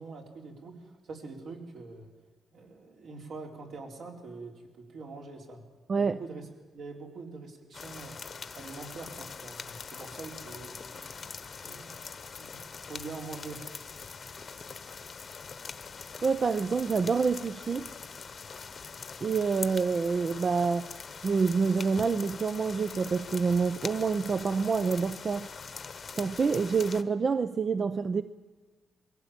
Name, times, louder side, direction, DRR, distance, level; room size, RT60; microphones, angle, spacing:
voice 1, 0.0-2.1 2.5-5.7 5.9-6.5 6.7-8.2 8.5-11.0 11.6-12.0 12.4-13.6, right 3 dB, 70° right, 4.3 m, -44 dB
sound 1, 7.7-27.0, left 5 dB, 40° left, 1.0 m, -43 dB
voice 2, 16.2-17.9 19.2-20.9 21.2-25.5 26.2-28.2, right 5 dB, 40° right, 0.6 m, -27 dB
23.0 x 16.5 x 9.0 m
wide cardioid pair, 135°, 0 cm